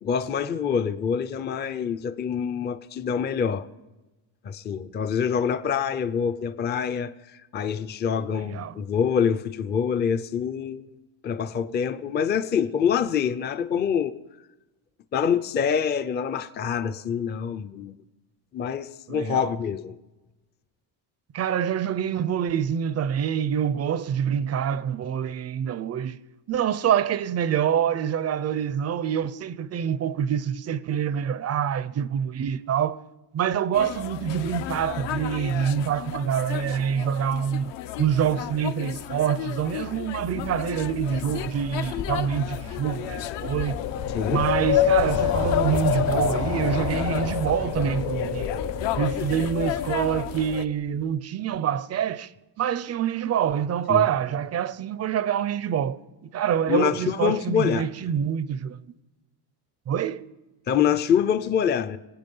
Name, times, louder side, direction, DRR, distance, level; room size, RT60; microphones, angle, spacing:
voice 1, 0.0-3.7 4.4-7.1 7.5-10.9 11.2-14.2 15.1-17.9 18.5-20.0 44.1-44.4 53.9-54.1 56.7-57.9 60.7-62.0, left 7 dB, 25° left, 0.4 m, -25 dB
voice 2, 8.3-8.8 19.1-19.5 21.3-26.2 26.5-33.0 33.3-37.7 38.0-43.8 44.3-48.5 49.0-52.3 52.6-58.8 59.9-60.2, right 9 dB, 35° right, 0.4 m, -26 dB
sound 1, 33.7-50.7, left 13 dB, 60° left, 0.7 m, -34 dB
Wind, 40.5-50.5, left 8 dB, 85° left, 4.4 m, -28 dB
25.5 x 9.2 x 5.3 m
cardioid pair, 170°, 48 cm